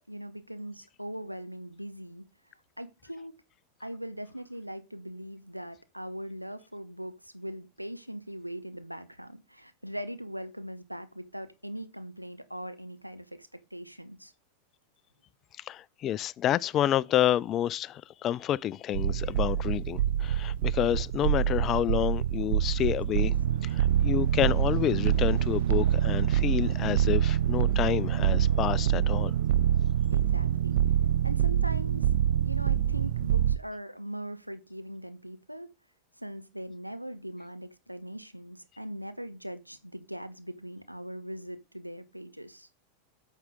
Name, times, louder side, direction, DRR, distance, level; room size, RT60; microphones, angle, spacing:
voice 1, 0.1-2.2 2.8-3.4 3.8-14.3 23.7-23.9 30.1-32.1 32.4-35.7 36.2-42.7, equal, 90° right, 0.9 m, -41 dB
voice 2, 15.6-23.4 23.6-29.3, left 11 dB, 30° left, 0.3 m, -29 dB
sound 1, 18.9-33.6, right 10 dB, 55° right, 0.4 m, -26 dB
9.1 x 6.5 x 3.6 m
figure-of-eight pair, 90°, 0 cm